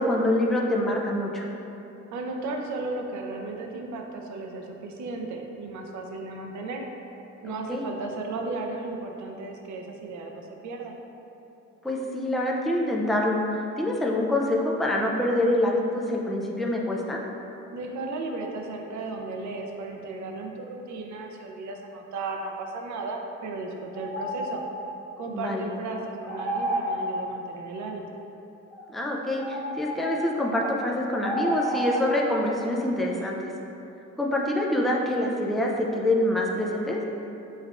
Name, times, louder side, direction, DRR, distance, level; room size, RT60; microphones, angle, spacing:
voice 1, 0.0-1.5 7.5-7.8 11.8-13.4 13.8-17.2 25.3-25.7 28.9-33.5 34.2-37.0, left 1 dB, ahead, -1 dB, 0.4 m, -26 dB
voice 2, 2.1-6.8 7.4-11.0 17.7-24.6 25.2-28.0, right 3 dB, 70° right, 2 dB, 0.6 m, -35 dB
sound 1, 23.9-24.7 26.2-27.0 28.7-28.8 29.3-30.8 31.2-32.1, equal, 35° left, 1.0 m, -30 dB
5.5 x 3.4 x 2.4 m, 2.9 s
cardioid pair, 90°, 30 cm